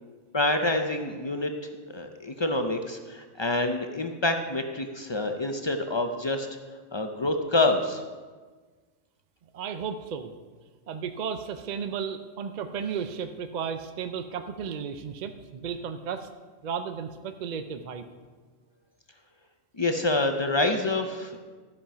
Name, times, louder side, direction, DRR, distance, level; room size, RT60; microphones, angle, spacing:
voice 1, 0.3-1.5 1.9-6.5 6.9-8.0 19.7-21.4, left 2 dB, 45° left, 5 dB, 0.3 m, -27 dB
voice 2, 9.5-10.3 10.9-16.3 16.6-18.1, right 6 dB, 60° right, 8 dB, 0.5 m, -34 dB
13.0 x 5.4 x 5.6 m, 1.4 s
omnidirectional pair, 1.3 m